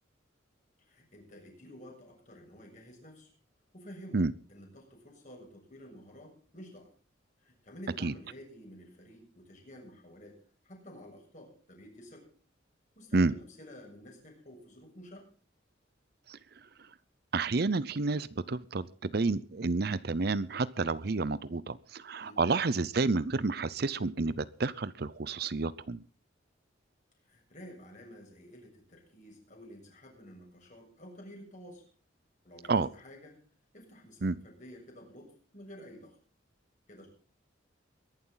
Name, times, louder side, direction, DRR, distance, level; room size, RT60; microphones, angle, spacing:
voice 1, 0.8-3.3 3.7-4.2 4.5-6.9 7.4-10.4 10.6-12.3 13.0-15.3 22.2-22.4 27.2-31.8 32.4-33.3 33.7-36.2 36.9-37.1, equal, 40° left, 1 dB, 7.0 m, -51 dB
voice 2, 17.3-26.0 32.7-32.9 34.2-34.3, right 3 dB, 55° right, 17 dB, 0.6 m, -30 dB
22.0 x 11.5 x 4.0 m, 0.41 s
head